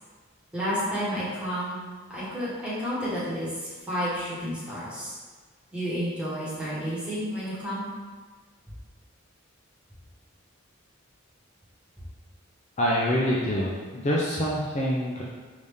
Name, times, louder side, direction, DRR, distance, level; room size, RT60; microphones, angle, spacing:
voice 1, 0.5-1.8 2.1-5.2 5.7-7.8, equal, 5° right, -10 dB, 1.3 m, -31 dB
voice 2, 12.8-15.2, equal, 35° left, -5 dB, 0.4 m, -26 dB
5.0 x 2.7 x 3.5 m, 1.4 s
head